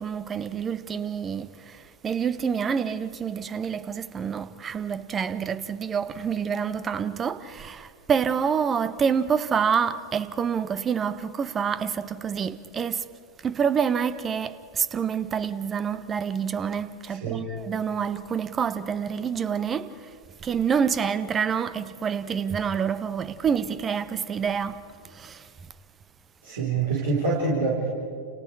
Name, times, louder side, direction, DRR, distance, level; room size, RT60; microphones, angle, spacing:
voice 1, 0.0-13.0 13.4-20.1 20.4-24.8 25.0-25.5, right 7 dB, 20° right, 1.0 m, -27 dB
voice 2, 17.1-17.4 26.4-27.9, right 4 dB, 60° right, 4.7 m, -26 dB
30.0 x 30.0 x 4.9 m
figure-of-eight pair, 90°, 0 cm